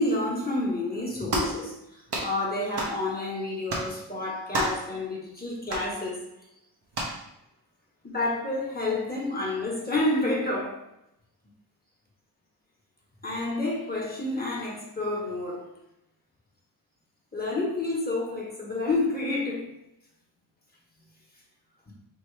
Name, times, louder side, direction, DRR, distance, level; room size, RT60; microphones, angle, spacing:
voice 1, 0.0-6.2 8.0-10.8 13.2-15.7 17.3-19.8 21.0-21.1 21.9-22.0, left 2 dB, 25° left, 1.1 m, -29 dB
sound 1, 1.3-1.6 2.1-2.3 2.8-3.0 3.7-3.9 4.5-4.9 5.7-5.9 6.9-7.2, right 1 dB, 85° right, 1.2 m, -29 dB
5.5 x 2.9 x 3.2 m
wide cardioid pair, 90°, 39 cm